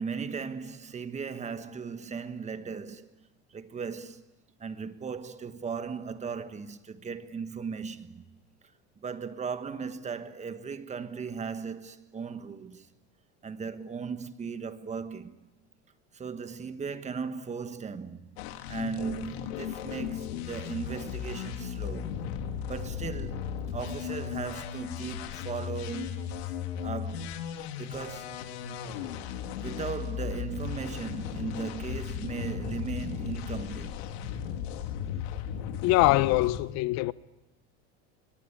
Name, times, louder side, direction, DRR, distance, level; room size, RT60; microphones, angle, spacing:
voice 1, 0.0-4.2 4.6-8.3 9.0-12.9 13.4-15.4 16.1-18.3 18.7-22.1 22.7-23.5 23.7-26.2 26.8-27.4 27.8-28.3 29.6-34.1, right 5 dB, 20° right, 1.4 m, -37 dB
sound 1, 18.4-36.6, left 8 dB, 85° left, 2.6 m, -36 dB
voice 2, 35.8-37.1, left 19 dB, 55° left, 0.8 m, -23 dB
24.0 x 21.5 x 8.7 m
supercardioid pair, 125°, 32 cm